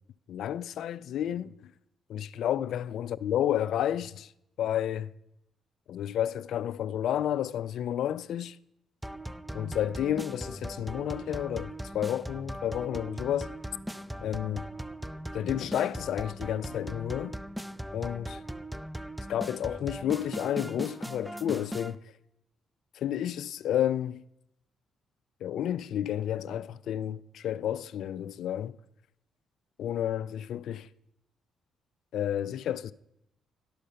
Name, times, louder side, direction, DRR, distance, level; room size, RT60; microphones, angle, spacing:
voice 1, 0.3-1.5 2.1-4.3 4.6-5.1 5.9-8.6 9.5-13.6 14.2-14.7 15.3-17.4 17.9-18.4 19.3-22.0 23.0-24.2 25.4-28.8 29.8-30.9 32.1-32.9, left 10 dB, 75° left, 0.3 m, -31 dB
sound 1, 9.0-21.9, equal, 5° right, 0.4 m, -39 dB
11.0 x 6.5 x 5.6 m
cardioid pair, 90°, 0 cm